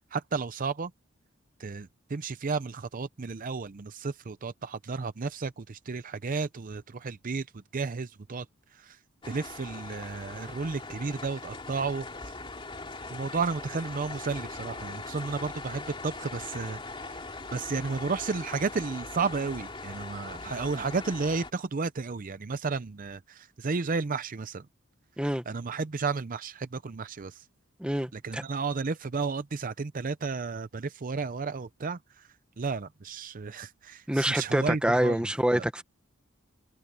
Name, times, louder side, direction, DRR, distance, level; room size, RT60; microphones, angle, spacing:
voice 1, 0.1-0.9 1.6-8.5 8.7-9.0 9.3-12.3 13.1-17.3 17.5-24.7 25.5-27.5 28.1-32.3 32.6-35.2 35.5-35.6, right 4 dB, 40° right, 0.5 m, -33 dB
sound 1, 9.2-21.5, left 3 dB, 25° left, 2.6 m, -41 dB
voice 2, 27.8-28.4 34.1-35.8, equal, 5° right, 1.1 m, -26 dB
head